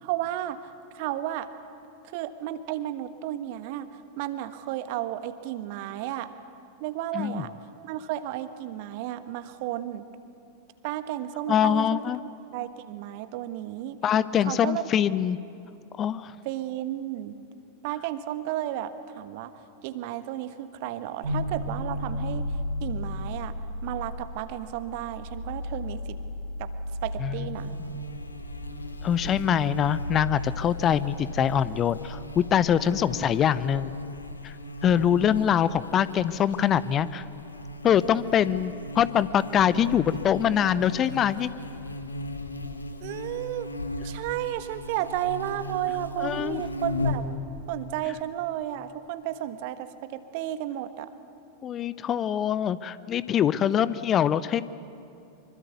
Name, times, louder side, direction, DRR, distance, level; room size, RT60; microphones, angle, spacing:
voice 1, 0.0-1.5 2.1-3.9 4.2-6.3 6.8-7.5 7.8-10.0 10.8-12.0 12.5-14.0 14.5-14.8 16.4-17.3 17.8-19.5 19.8-22.4 22.8-23.5 23.8-26.2 26.6-26.7 27.0-27.7 43.0-43.7 44.0-47.3 47.7-51.1, right 13 dB, 50° right, 11 dB, 1.4 m, -33 dB
voice 2, 7.1-7.4 11.5-12.2 14.0-15.4 16.0-16.3 27.2-27.5 29.0-34.0 34.4-34.5 34.8-37.3 37.8-41.5 46.2-46.6 51.6-54.6, left 9 dB, 30° left, 17 dB, 0.7 m, -24 dB
sound 1, 21.2-33.3, left 1 dB, 75° right, 4.8 m, -35 dB
Buzz, 27.6-47.4, left 1 dB, 80° left, 1.6 m, -37 dB
25.0 x 24.5 x 8.3 m, 2.7 s
figure-of-eight pair, 90°, 0 cm